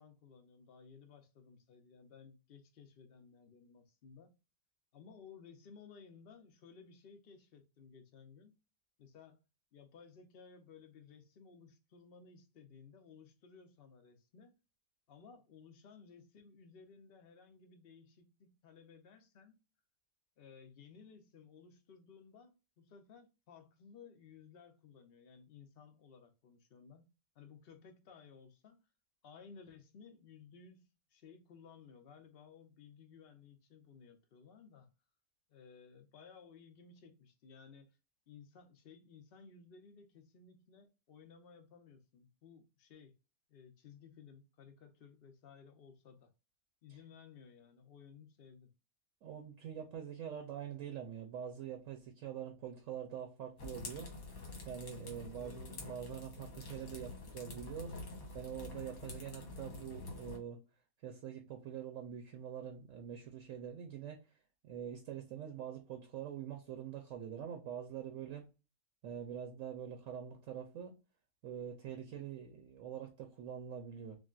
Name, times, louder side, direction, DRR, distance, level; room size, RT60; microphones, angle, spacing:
voice 1, 0.0-4.3 4.9-8.6 9.0-9.4 9.7-14.5 15.1-19.6 20.4-28.8 29.2-34.9 35.5-38.0 38.3-43.1 43.5-46.3 46.8-48.7 55.3-55.6 58.9-59.1 72.1-72.2, left 6 dB, 50° left, 0.9 m, -58 dB
voice 2, 49.2-54.4 54.6-58.1 58.3-60.6 61.0-64.2 64.6-68.4 69.0-71.0 71.4-74.2, right 9 dB, 70° right, 1.1 m, -45 dB
sound 1, 53.6-60.4, left 2 dB, 80° left, 1.7 m, -47 dB
6.1 x 2.2 x 2.4 m
omnidirectional pair, 1.5 m